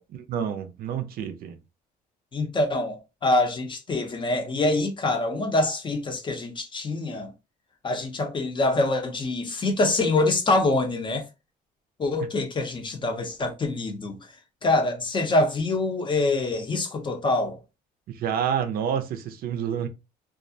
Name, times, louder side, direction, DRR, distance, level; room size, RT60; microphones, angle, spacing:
voice 1, 0.1-1.6 12.2-12.3 18.1-19.9, right 8 dB, 60° right, 0.4 m, -28 dB
voice 2, 2.3-7.3 7.8-11.2 12.0-14.2 14.6-17.6, left 2 dB, 30° left, 0.6 m, -25 dB
2.3 x 2.0 x 2.6 m
cardioid pair, 110°, 17 cm